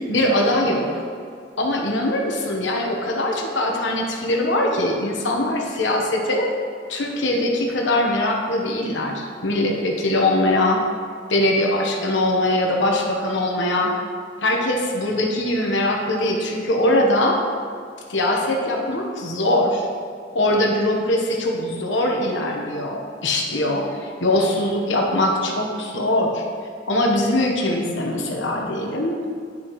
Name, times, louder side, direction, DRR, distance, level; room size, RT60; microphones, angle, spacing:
voice 1, 0.1-1.0 1.6-6.5 6.9-10.8 11.3-13.9 14.4-17.4 18.1-19.9 20.3-26.4 26.9-29.3, left 1 dB, 80° left, 0 dB, 1.1 m, -22 dB
10.5 x 6.3 x 3.1 m, 2.3 s
head